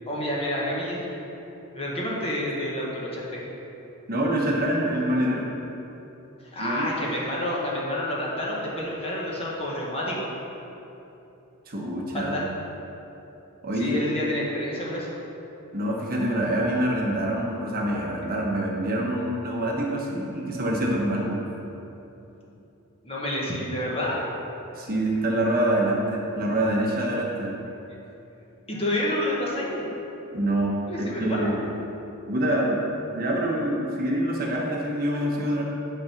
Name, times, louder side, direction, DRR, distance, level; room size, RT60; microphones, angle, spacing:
voice 1, 0.1-1.1 1.7-3.4 6.4-10.3 12.1-12.5 13.8-15.1 23.0-24.3 27.9-28.0 28.7-29.9 30.9-31.5, left 1 dB, 25° left, -4 dB, 1.3 m, -29 dB
voice 2, 4.1-5.4 6.6-6.9 11.7-12.3 13.6-14.0 15.7-21.4 24.7-27.6 30.3-31.6 32.3-32.8 33.1-35.6, right 1 dB, 45° right, -2 dB, 1.1 m, -26 dB
8.4 x 4.0 x 5.9 m, 3.0 s
head